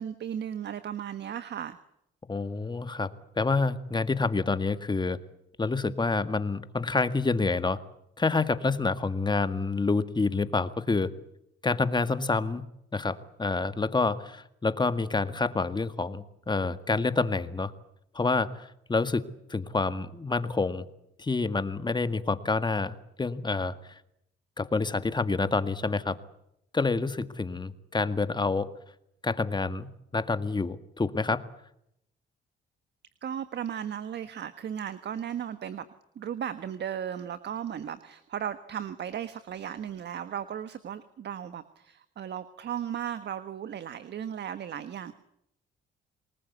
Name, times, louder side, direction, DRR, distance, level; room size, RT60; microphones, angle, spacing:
voice 1, 0.0-1.8 33.2-35.9 36.1-45.1, right 9 dB, 60° right, 13 dB, 1.4 m, -36 dB
voice 2, 2.3-5.2 5.6-7.8 8.2-11.1 11.6-12.6 12.9-17.7 18.1-20.9 21.2-24.0 24.6-26.2 26.7-28.7 29.2-31.5, left 3 dB, 20° left, 12 dB, 1.9 m, -28 dB
28.0 x 20.0 x 8.4 m, 0.79 s
cardioid pair, 90°, 20 cm